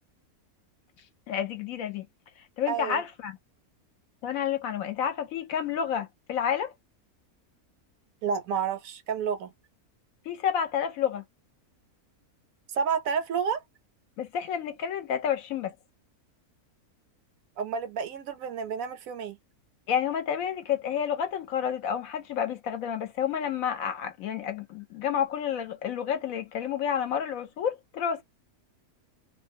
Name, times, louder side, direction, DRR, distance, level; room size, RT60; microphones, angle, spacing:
voice 1, 1.3-2.1 2.6-3.4 4.2-6.7 10.3-11.2 14.2-15.7 19.9-28.2, left 8 dB, 70° left, 1.0 m, -30 dB
voice 2, 2.7-3.0 8.2-9.5 12.7-13.6 17.6-19.4, right 6 dB, 70° right, 0.9 m, -30 dB
2.5 x 2.2 x 2.5 m
omnidirectional pair, 1.6 m